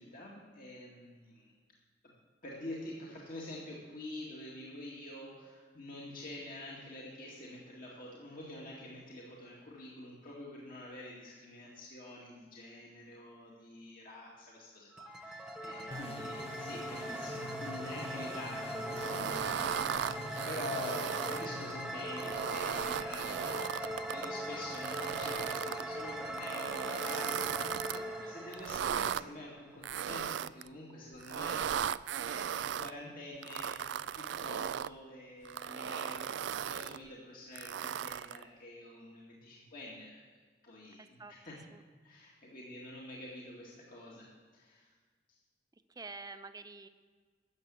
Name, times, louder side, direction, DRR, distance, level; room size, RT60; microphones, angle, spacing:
voice 1, 0.0-1.5 2.4-20.2 20.4-31.7 32.2-40.3 40.6-41.6 42.0-44.3 44.5-44.9, left 1 dB, 50° left, -4 dB, 2.4 m, -47 dB
sound 1, 14.9-29.7, equal, 5° right, 1.2 m, -41 dB
voice 2, 15.8-16.3 27.9-28.4 41.0-41.3 41.7-41.8 45.9-46.9, right 3 dB, 20° right, 9 dB, 0.7 m, -49 dB
sound 2, 15.9-22.4, left 2 dB, 35° left, 0.9 m, -46 dB
sound 3, 18.9-21.5 22.1-24.3 24.7-25.8 26.4-28.0 28.5-29.2 29.8-30.7 31.2-32.9 33.4-34.9 35.4-37.0 37.6-38.4, right 8 dB, 70° right, 0.3 m, -37 dB
13.5 x 7.6 x 8.4 m, 1.5 s
head